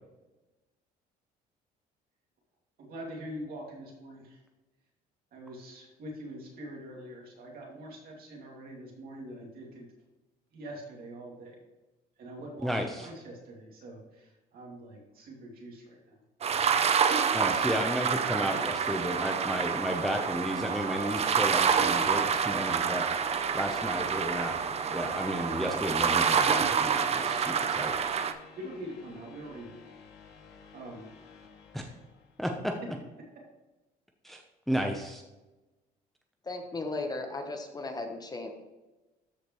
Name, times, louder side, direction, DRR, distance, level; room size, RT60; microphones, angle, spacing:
voice 1, 2.8-4.4 5.3-9.9 10.5-11.6 12.2-16.2 18.5-18.9 28.5-29.8 30.7-31.1 31.8-32.0, right 1 dB, 60° right, -1 dB, 2.6 m, -44 dB
sound 1, 16.4-28.3, right 6 dB, 40° right, 0.6 m, -28 dB
voice 2, 17.3-23.0 23.5-24.5 24.9-27.9 31.7-31.8 32.4-32.7 34.2-34.4 34.7-35.2, equal, ahead, 3 dB, 0.8 m, -32 dB
sound 2, 19.6-32.6, left 5 dB, 85° left, 1.3 m, -50 dB
voice 3, 36.4-38.5, left 2 dB, 25° left, 5 dB, 1.1 m, -36 dB
13.0 x 5.1 x 3.1 m, 1.1 s
cardioid pair, 110°, 17 cm